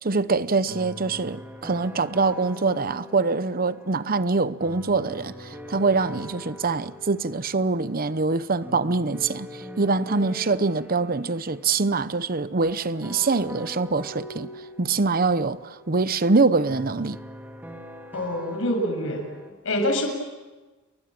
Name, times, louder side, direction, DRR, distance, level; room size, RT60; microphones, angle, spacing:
voice 1, 0.0-14.5 14.8-17.2, right 3 dB, 40° right, 0.8 m, -24 dB
sound 1, 0.7-19.5, equal, 10° right, 2.7 m, -43 dB
voice 2, 18.1-19.2 19.6-20.1, left 1 dB, 65° left, 7.4 m, -25 dB
29.5 x 23.0 x 7.7 m
head